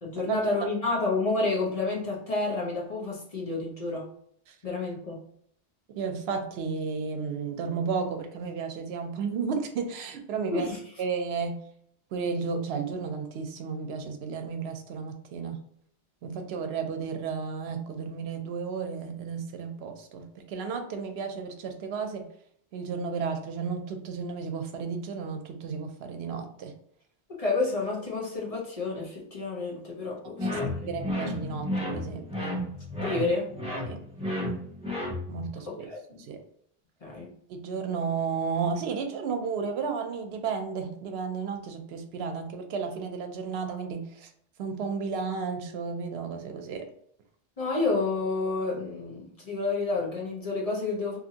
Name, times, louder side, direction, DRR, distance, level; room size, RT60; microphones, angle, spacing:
voice 1, 0.0-4.1 4.6-5.2 10.5-10.8 27.3-30.9 33.0-33.5 35.7-36.2 37.0-37.3 47.6-51.2, left 3 dB, 40° left, -2 dB, 0.7 m, -30 dB
voice 2, 5.9-10.7 11.0-11.6 12.1-15.6 16.2-22.2 22.7-26.7 30.4-32.5 33.9-34.0 35.3-35.9 36.2-36.4 37.5-44.3 44.6-46.9, right 5 dB, 80° right, 6 dB, 0.8 m, -33 dB
sound 1, 30.4-35.5, left 1 dB, 5° right, 0.8 m, -32 dB
2.7 x 2.5 x 2.7 m, 0.65 s
omnidirectional pair, 1.0 m